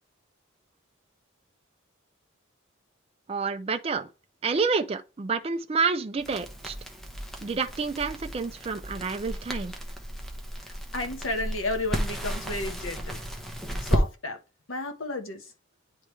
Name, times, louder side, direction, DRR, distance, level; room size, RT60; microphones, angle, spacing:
voice 1, 3.3-4.1 4.4-6.7 7.4-9.7, right 4 dB, 30° right, 0.4 m, -29 dB
Crackle, 6.2-14.1, equal, ahead, 0.8 m, -33 dB
voice 2, 10.9-13.2 13.8-14.4 14.7-15.5, left 2 dB, 75° left, 1.1 m, -32 dB
9.7 x 3.4 x 3.2 m
head